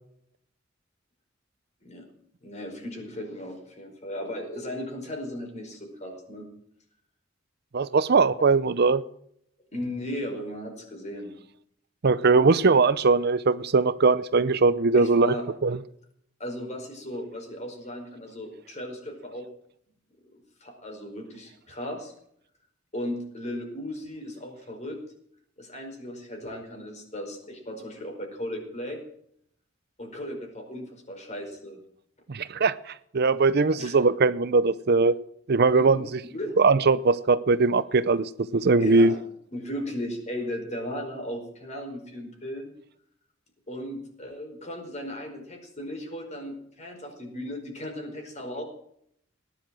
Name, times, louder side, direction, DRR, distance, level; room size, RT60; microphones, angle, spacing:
voice 1, 2.4-6.5 8.4-8.5 9.7-11.3 12.2-12.5 14.9-15.4 16.4-19.5 20.3-22.1 22.9-25.0 25.6-29.0 30.0-31.8 33.7-34.0 35.7-36.0 36.3-36.6 38.7-39.2 39.5-42.7 43.7-48.6, left 1 dB, 35° left, 3 dB, 5.0 m, -36 dB
voice 2, 7.7-9.0 12.0-15.4 15.6-15.8 32.3-32.7 33.1-35.1 35.5-36.2 36.6-39.1, right 4 dB, 55° right, 16 dB, 0.6 m, -20 dB
18.0 x 10.5 x 7.6 m, 0.69 s
head